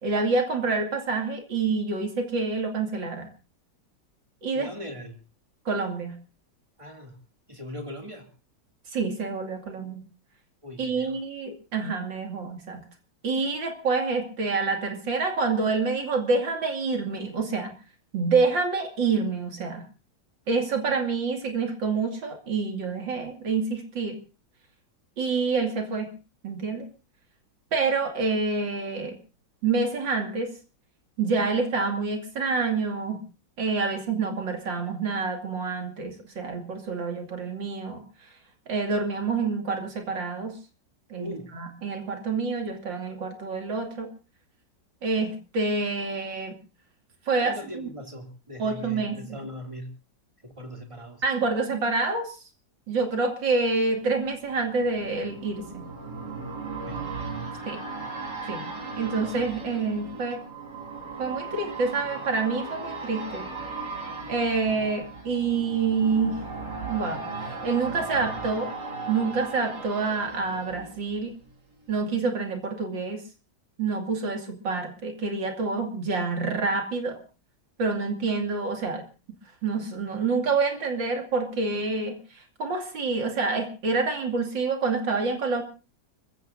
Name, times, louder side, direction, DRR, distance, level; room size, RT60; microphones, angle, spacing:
voice 1, 0.0-3.3 4.4-4.7 5.6-6.1 8.9-10.0 10.8-12.8 13.2-17.7 18.1-19.8 20.5-24.2 25.2-26.1 26.4-26.9 27.7-29.2 29.6-30.6 31.2-33.2 33.6-38.0 38.7-40.6 41.1-44.1 45.0-46.6 47.3-47.9 48.6-49.4 51.2-52.4 52.9-55.9 57.7-57.8 58.5-58.7 59.0-60.4 61.2-63.5 64.3-66.4 66.9-68.7 69.1-71.4 71.9-73.2 73.8-77.2 77.8-79.0 79.6-85.6, right 4 dB, 90° right, 4 dB, 3.2 m, -27 dB
voice 2, 4.5-5.2 6.8-7.2 7.5-8.3 10.6-11.2 41.2-41.5 47.4-49.9 50.4-51.2 56.8-57.0, equal, 15° right, 2 dB, 2.7 m, -39 dB
sound 1, 53.7-71.5 71.9-72.0, right 4 dB, 70° right, 2.9 m, -37 dB
29.5 x 15.0 x 2.7 m, 0.33 s
omnidirectional pair, 2.0 m